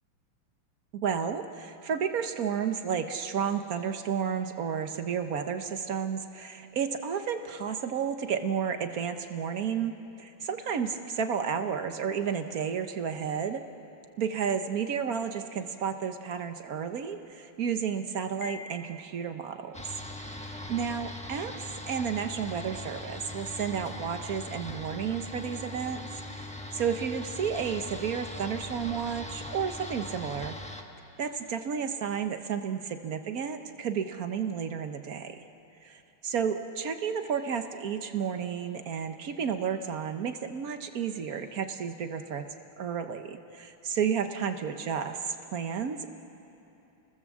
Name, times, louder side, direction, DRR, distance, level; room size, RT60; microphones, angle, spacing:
voice 1, 0.9-13.6 14.2-19.8 20.4-21.5 21.9-30.5 31.2-35.4 35.8-42.4 42.8-46.1, right 7 dB, 55° right, 7 dB, 1.1 m, -32 dB
Piano, 18.4-19.4, left 4 dB, 80° left, 1.6 m, -45 dB
sound 1, 19.7-30.8, left 1 dB, 5° left, 0.8 m, -40 dB
30.0 x 20.5 x 7.3 m, 2.9 s
omnidirectional pair, 2.4 m